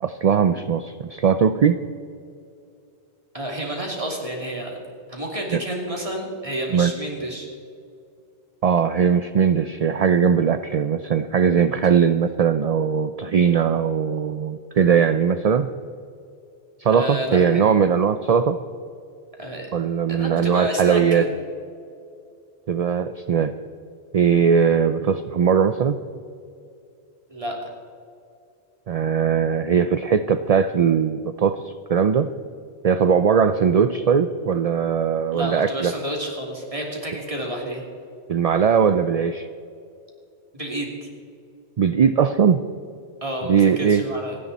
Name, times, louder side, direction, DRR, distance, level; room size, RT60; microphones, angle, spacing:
voice 1, 0.0-1.8 5.5-5.6 6.7-6.9 8.6-15.7 16.8-18.6 19.7-21.2 22.7-23.5 24.1-26.0 28.9-32.3 32.8-35.9 38.3-39.5 41.8-42.6 43.5-44.0, right 7 dB, 50° right, 11 dB, 0.4 m, -19 dB
voice 2, 3.3-4.8 5.1-7.5 16.9-17.4 19.4-19.7 20.1-21.3 27.3-27.6 35.3-37.8 40.5-41.1 43.2-44.4, right 1 dB, 30° right, -1 dB, 2.9 m, -29 dB
27.0 x 10.0 x 4.1 m, 2.5 s
omnidirectional pair, 1.1 m